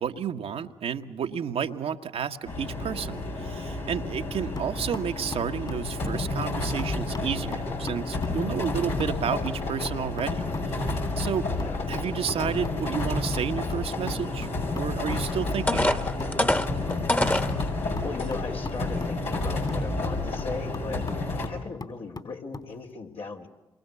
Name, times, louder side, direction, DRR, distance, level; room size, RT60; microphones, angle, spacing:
voice 1, 0.0-11.5 11.9-14.5 14.7-16.0, right 8 dB, 65° right, 5 dB, 1.4 m, -31 dB
sound 1, 2.4-21.5, left 2 dB, 80° left, 6.1 m, -30 dB
sound 2, 4.6-22.7, left 3 dB, 40° left, 4.0 m, -41 dB
sound 3, 15.1-15.2 15.7-17.5 18.2-18.3 18.8-19.0, left 1 dB, 15° left, 1.7 m, -25 dB
voice 2, 17.6-23.5, left 4 dB, 65° left, 1 dB, 3.7 m, -38 dB
28.0 x 23.0 x 8.3 m, 1.1 s
hypercardioid pair, 40°, 11 cm